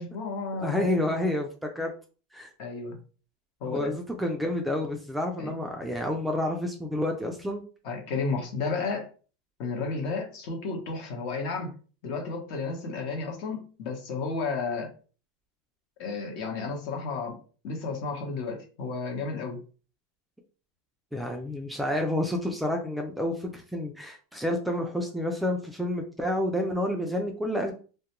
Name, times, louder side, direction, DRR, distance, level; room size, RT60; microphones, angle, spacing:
voice 1, 0.0-0.9 2.6-3.0 3.6-3.9 5.4-5.5 7.8-9.1 9.6-11.7 12.0-14.9 16.0-17.4 17.6-19.6, left 4 dB, 55° left, 2 dB, 0.9 m, -32 dB
voice 2, 0.5-1.9 2.3-2.5 3.7-7.6 21.1-27.7, left 1 dB, 5° right, 2 dB, 0.4 m, -29 dB
2.2 x 2.1 x 2.9 m, 0.37 s
supercardioid pair, 135°, 0 cm